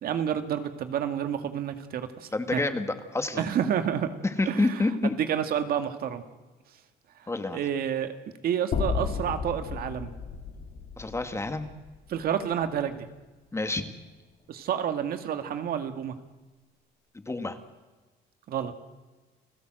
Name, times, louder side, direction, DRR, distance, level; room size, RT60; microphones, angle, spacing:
voice 1, 0.0-2.6 3.4-4.1 4.4-4.8 5.2-6.2 7.2-8.1 8.4-10.1 12.1-13.1 14.5-16.2 18.5-18.7, right 9 dB, 65° right, 8 dB, 2.1 m, -29 dB
voice 2, 2.3-3.5 4.4-5.1 7.3-7.6 11.0-11.7 13.5-13.9 17.3-17.6, left 2 dB, 15° left, 8 dB, 2.1 m, -28 dB
sound 1, 8.7-12.9, left 6 dB, 55° left, 3.3 m, -34 dB
29.5 x 16.5 x 7.9 m, 1.2 s
cardioid pair, 110°, 17 cm